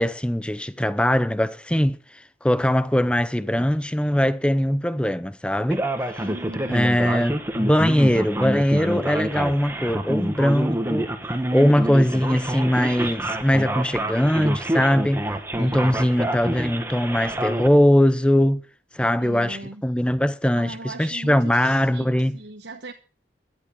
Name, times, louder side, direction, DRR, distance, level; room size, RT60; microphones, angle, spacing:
voice 1, 0.0-2.0 2.4-5.8 6.7-11.1 11.5-15.2 15.6-18.6 18.9-22.3, equal, 5° left, 0.6 m, -21 dB
Male speech man speaking, 5.7-17.7, right 1 dB, 10° right, 1.4 m, -27 dB
voice 2, 6.2-6.9 15.6-16.1 19.2-19.8 20.6-22.9, right 2 dB, 65° right, 1.1 m, -39 dB
13.5 x 11.5 x 5.4 m
head